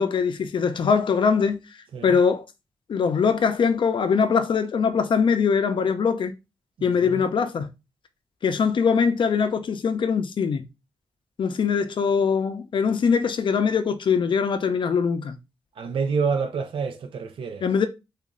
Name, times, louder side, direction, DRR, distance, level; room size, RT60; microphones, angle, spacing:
voice 1, 0.0-1.6 2.0-2.5 2.9-6.3 6.8-7.7 8.4-10.6 11.4-15.4 17.6-17.9, left 6 dB, 65° left, 0.6 m, -22 dB
voice 2, 15.8-17.7, right 5 dB, 75° right, 0.5 m, -27 dB
3.0 x 2.4 x 3.7 m
cardioid pair, 65°, 9 cm